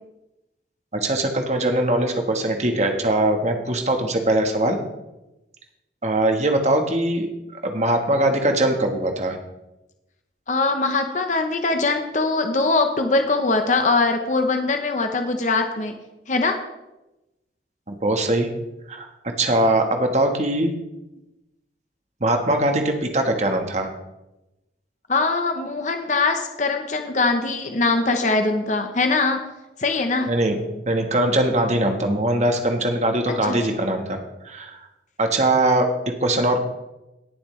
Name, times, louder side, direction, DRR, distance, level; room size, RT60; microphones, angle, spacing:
voice 1, 0.9-4.8 6.0-7.3 7.6-9.4 17.9-18.5 18.9-19.1 19.4-20.7 22.2-23.9 30.3-30.6 30.9-34.2 34.4-34.8 35.2-35.9 36.2-36.6, right 1 dB, 40° right, 4 dB, 1.3 m, -21 dB
voice 2, 10.5-15.9 16.3-16.6 25.1-29.4 29.8-30.3 33.3-33.6, left 3 dB, 45° left, 5 dB, 0.8 m, -22 dB
18.5 x 7.3 x 3.2 m, 0.97 s
head